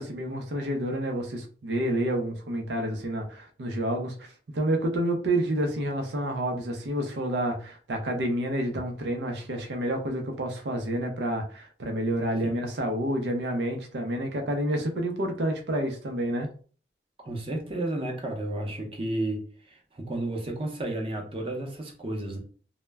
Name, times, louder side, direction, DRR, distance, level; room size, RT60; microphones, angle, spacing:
voice 1, 0.0-4.1 4.5-16.5, right 1 dB, 75° right, 4 dB, 0.5 m, -29 dB
voice 2, 17.2-22.4, right 1 dB, 30° right, 1 dB, 0.6 m, -32 dB
2.1 x 2.1 x 3.3 m, 0.41 s
head